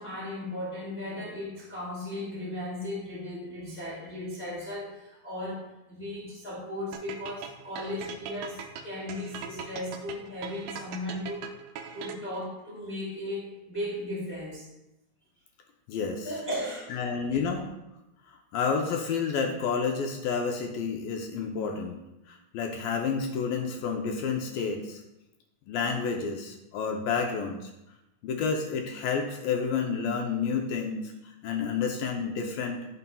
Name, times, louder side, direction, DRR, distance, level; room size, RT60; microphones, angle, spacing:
voice 1, 0.0-11.6 11.9-14.7 16.2-17.4, left 1 dB, 20° left, -7 dB, 2.2 m, -36 dB
sound 1, 6.9-12.5, right 8 dB, 80° right, 2.0 m, -40 dB
voice 2, 15.9-16.3 16.9-17.7 18.5-22.0 22.3-25.0 25.7-27.7 28.2-31.1 31.4-32.9, left 5 dB, 75° left, 2 dB, 2.3 m, -30 dB
16.5 x 5.6 x 2.3 m, 0.93 s
omnidirectional pair, 4.5 m